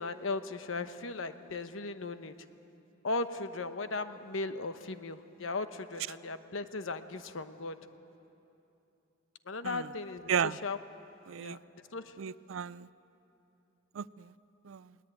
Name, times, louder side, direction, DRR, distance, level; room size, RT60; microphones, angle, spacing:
voice 1, 0.0-2.4 3.0-7.8 9.5-10.3 10.6-10.8 11.4-12.1, left 3 dB, 80° left, 10 dB, 1.0 m, -37 dB
voice 2, 11.3-11.6 12.2-12.9 13.9-14.3 14.6-14.9, right 7 dB, 85° right, 19 dB, 0.4 m, -34 dB
21.0 x 19.0 x 9.0 m, 2.8 s
head